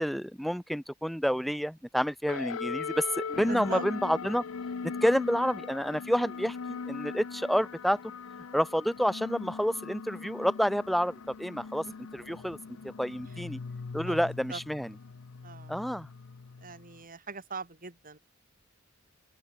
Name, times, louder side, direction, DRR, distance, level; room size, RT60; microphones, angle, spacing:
voice 1, 0.0-4.4 4.8-8.0 8.5-11.8 12.1-12.6 13.0-13.6 13.9-14.9 15.7-16.1, equal, ahead, 1.3 m, -29 dB
sound 1, 2.3-17.0, left 5 dB, 85° left, 0.6 m, -40 dB
voice 2, 3.5-3.8 4.9-5.1 11.9-12.0 13.2-13.4 14.0-14.2 14.5-14.6 15.4-15.9 16.6-18.2, right 4 dB, 45° right, 4.3 m, -42 dB
open air
head